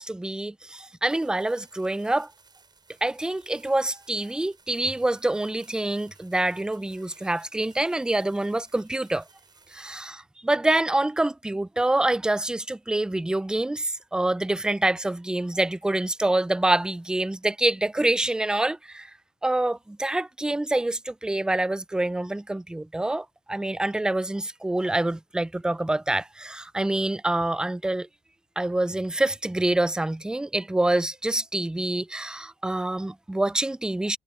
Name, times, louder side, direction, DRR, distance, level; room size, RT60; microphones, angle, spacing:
voice 1, 0.0-2.3 3.0-9.2 9.7-19.1 19.4-28.1 28.6-34.2, right 2 dB, 5° right, 0.4 m, -26 dB
sound 1, 1.1-10.0, right 4 dB, 25° right, 7.2 m, -58 dB
cardioid pair, 110°, 17 cm